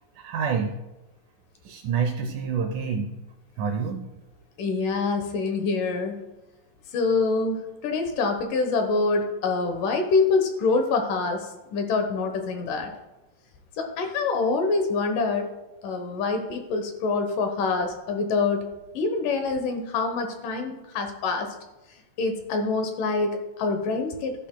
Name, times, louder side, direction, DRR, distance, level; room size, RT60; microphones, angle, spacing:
voice 1, 0.2-0.8 1.7-3.1 3.6-4.1, right 6 dB, 75° right, 6 dB, 2.0 m, -27 dB
voice 2, 4.6-6.1 6.9-12.9 13.8-15.5 15.8-18.6 18.9-21.5 22.2-24.3, left 4 dB, 70° left, 5 dB, 2.5 m, -25 dB
13.0 x 10.5 x 2.2 m, 1.0 s
omnidirectional pair, 4.2 m